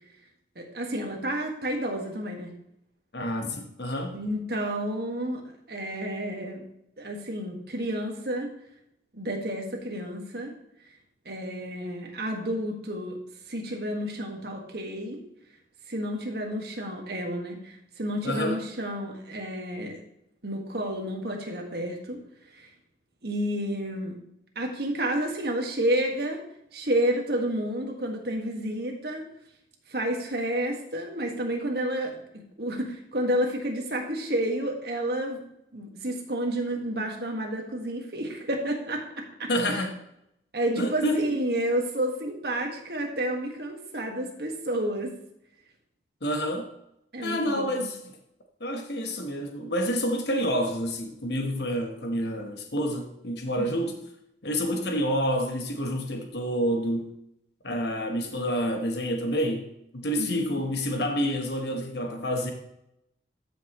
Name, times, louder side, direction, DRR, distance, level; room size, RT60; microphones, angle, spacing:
voice 1, 0.5-2.5 4.1-5.4 5.7-6.6 7.0-8.5 9.1-10.5 11.2-13.2 13.5-15.2 15.9-20.0 20.4-22.2 22.5-22.7 23.2-24.2 24.5-26.4 26.7-29.3 29.9-35.4 35.7-39.0 39.4-39.8 40.5-45.1 47.1-47.9 53.6-53.9 60.2-60.6, right 1 dB, 60° right, 1 dB, 1.7 m, -30 dB
voice 2, 3.1-4.2 18.2-18.6 39.5-40.0 40.8-41.2 46.2-46.7 47.2-48.1 48.6-53.9 54.4-57.1 57.6-62.5, equal, 65° left, 4 dB, 1.2 m, -28 dB
13.0 x 5.8 x 3.1 m, 0.79 s
head